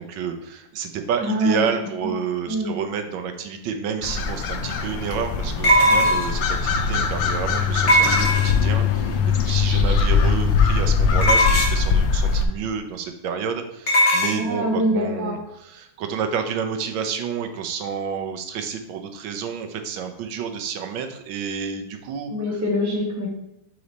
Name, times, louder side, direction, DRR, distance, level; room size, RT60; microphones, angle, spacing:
voice 1, 0.0-22.6, right 7 dB, 85° right, 6 dB, 1.5 m, -30 dB
voice 2, 1.2-1.6 2.0-2.1 2.5-2.7 14.3-15.3 22.3-23.3, equal, 10° right, -2 dB, 0.8 m, -24 dB
sound 1, 4.0-12.5, left 5 dB, 75° left, 1.3 m, -21 dB
sound 2, 4.1-4.2 5.6-6.5 7.9-8.8 11.2-11.9 13.9-14.4, equal, 40° left, 1.5 m, -18 dB
5.0 x 4.8 x 4.1 m, 0.85 s
omnidirectional pair, 2.1 m